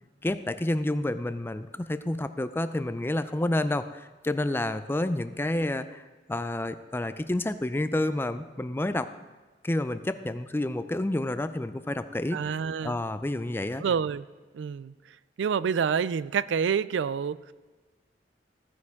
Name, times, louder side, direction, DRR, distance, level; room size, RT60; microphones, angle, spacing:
voice 1, 0.2-9.1 9.6-12.4 12.8-13.8, left 1 dB, 15° left, 12 dB, 0.4 m, -29 dB
voice 2, 12.3-13.0 13.8-14.2 14.5-14.9 15.4-17.5, right 7 dB, 85° right, 19 dB, 0.3 m, -28 dB
15.0 x 9.6 x 3.6 m, 1.3 s
head